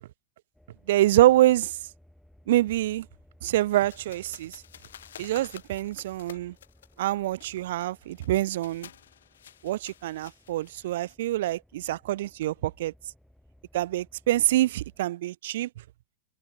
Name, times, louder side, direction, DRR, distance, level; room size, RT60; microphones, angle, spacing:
sound 1, 0.5-15.0, left 1 dB, ahead, 4.5 m, -59 dB
voice 1, 0.9-1.8 2.5-3.1 3.4-4.6 5.2-6.5 7.0-8.9 9.6-12.9 13.7-15.7, right 15 dB, 55° right, 0.4 m, -25 dB
sound 2, 3.8-11.1, left 10 dB, 65° left, 1.5 m, -51 dB
figure-of-eight pair, 90°, 0 cm